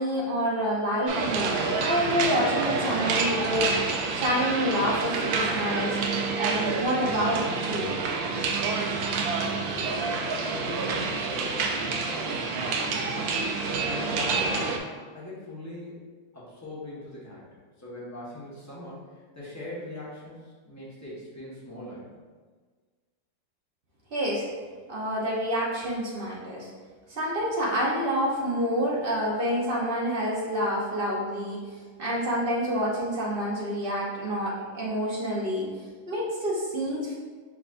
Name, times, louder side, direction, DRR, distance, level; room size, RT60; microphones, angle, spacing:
voice 1, 0.0-6.0 6.4-7.9 24.1-24.4 24.9-26.7 27.1-35.7 36.1-37.1, equal, 60° right, -5 dB, 0.5 m, -28 dB
sound 1, 1.1-14.8, right 4 dB, 80° right, 1.3 m, -28 dB
voice 2, 8.9-13.4 13.8-14.9 15.1-16.0 16.3-17.4 17.8-22.2, left 1 dB, 10° left, -8 dB, 0.9 m, -41 dB
6.0 x 3.3 x 2.5 m, 1.5 s
omnidirectional pair, 2.1 m